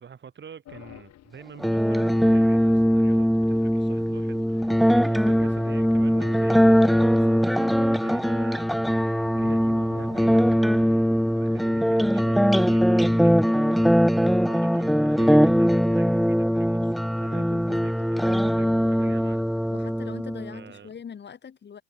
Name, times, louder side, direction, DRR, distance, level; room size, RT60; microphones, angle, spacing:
voice 1, 0.0-19.7 20.5-20.9, right 7 dB, 35° right, 7.2 m, -45 dB
sound 1, 0.7-10.6, left 13 dB, 60° left, 7.2 m, -48 dB
sound 2, 1.6-20.6, equal, ahead, 0.8 m, -21 dB
voice 2, 17.4-17.8 19.7-21.8, left 7 dB, 35° left, 3.9 m, -41 dB
supercardioid pair, 95°, 30 cm